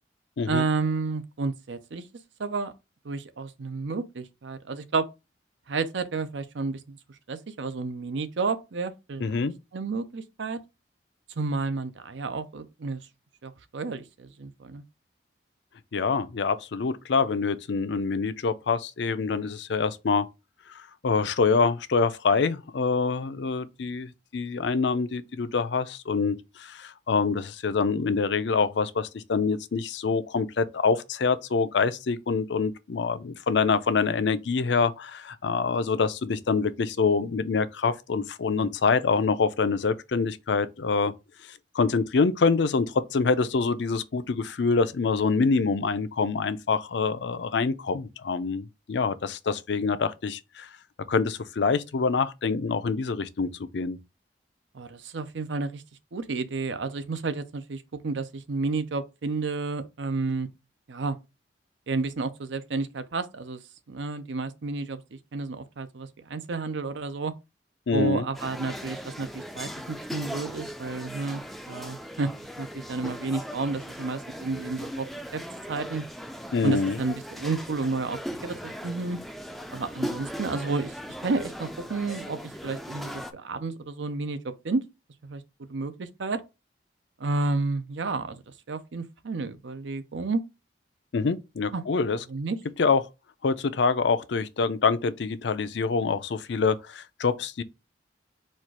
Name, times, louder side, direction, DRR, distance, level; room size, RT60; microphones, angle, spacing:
voice 1, 0.5-2.0 2.4-2.7 3.0-5.1 5.7-7.0 7.3-10.6 11.4-13.0 13.4-14.8 54.7-55.8 56.1-60.5 60.9-61.2 61.9-63.6 63.9-67.3 67.9-72.3 72.6-75.1 75.3-75.4 75.7-76.0 76.6-79.2 79.7-80.9 81.2-82.4 82.6-84.8 85.2-85.4 85.7-86.4 87.2-88.4 88.7-90.4 91.7-91.8 92.3-92.6, right 3 dB, 85° right, 0.6 m, -31 dB
voice 2, 9.2-9.5 15.9-20.3 20.7-41.1 41.5-50.7 51.1-54.0 67.9-68.3 76.5-77.0 91.1-92.2 92.8-93.0 93.4-97.6, left 4 dB, 75° left, 0.5 m, -26 dB
sound 1, 68.3-83.3, equal, ahead, 0.3 m, -38 dB
4.3 x 2.4 x 4.6 m
head